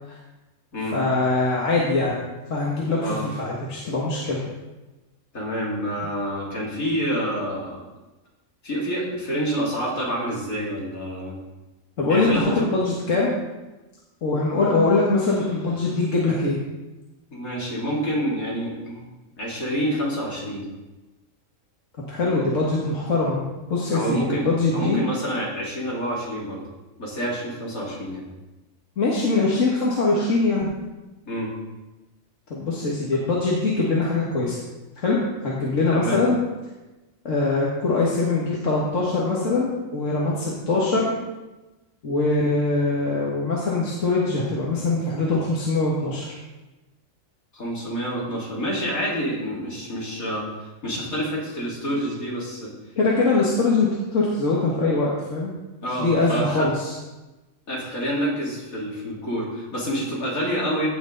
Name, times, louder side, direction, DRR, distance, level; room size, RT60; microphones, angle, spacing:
voice 1, 0.9-2.2 2.5-4.4 12.0-13.4 14.2-16.6 22.1-23.4 23.7-25.0 29.0-30.7 32.5-34.6 35.0-36.4 37.3-41.1 42.0-46.4 53.0-55.5 55.9-56.9, left 3 dB, 65° left, -5 dB, 1.9 m, -22 dB
voice 2, 5.3-7.8 8.6-11.3 12.1-12.7 17.3-19.0 19.4-20.6 23.9-24.5 24.7-26.6 27.0-28.2 31.3-31.5 35.9-36.2 47.5-50.5 50.8-52.7 55.8-56.7 57.7-60.9, equal, 90° left, -5 dB, 3.4 m, -27 dB
16.0 x 6.2 x 4.0 m, 1.1 s
omnidirectional pair, 1.4 m